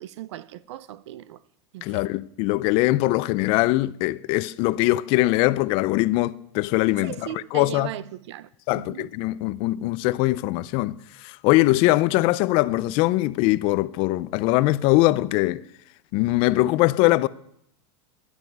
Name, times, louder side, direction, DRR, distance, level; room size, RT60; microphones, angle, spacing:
voice 1, 0.0-1.4 1.7-2.1 7.0-9.1, right 13 dB, 75° right, 0.7 m, -38 dB
voice 2, 1.8-7.1 7.5-7.9 8.7-11.0 11.2-15.6 16.1-17.3, left 18 dB, 40° left, 0.4 m, -21 dB
13.5 x 11.5 x 4.7 m
supercardioid pair, 160°, 15 cm